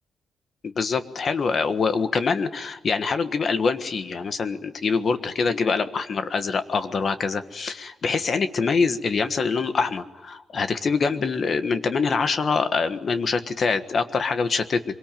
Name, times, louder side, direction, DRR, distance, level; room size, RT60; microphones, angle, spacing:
voice 1, 0.6-14.9, left 4 dB, 40° left, 10 dB, 1.4 m, -24 dB
25.0 x 23.0 x 9.1 m, 1.0 s
wide cardioid pair, 180°, 0 cm